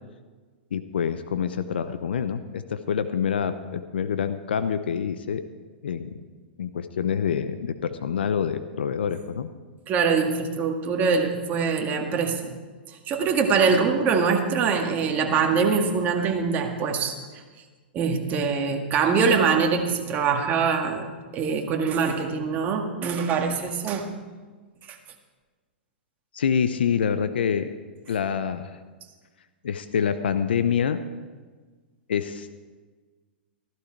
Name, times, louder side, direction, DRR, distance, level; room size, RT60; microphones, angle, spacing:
voice 1, 0.7-5.4 5.8-6.1 6.6-9.5 26.3-27.7 28.1-28.7 29.6-31.0 32.1-32.6, left 7 dB, 75° left, 11 dB, 0.7 m, -26 dB
voice 2, 9.9-12.5 13.1-17.1 17.9-21.1 21.3-24.1 24.9-25.0, right 5 dB, 30° right, 3 dB, 1.9 m, -23 dB
14.5 x 12.0 x 4.6 m, 1.4 s
hypercardioid pair, 110°, 6 cm